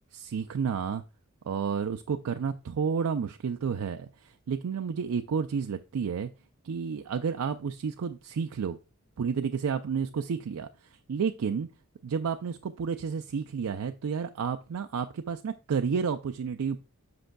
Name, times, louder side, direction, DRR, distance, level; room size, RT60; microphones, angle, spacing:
voice 1, 0.1-1.0 1.5-6.3 6.6-8.8 9.2-11.7 12.0-16.8, right 6 dB, 80° right, 0.4 m, -31 dB
7.8 x 6.1 x 2.2 m
head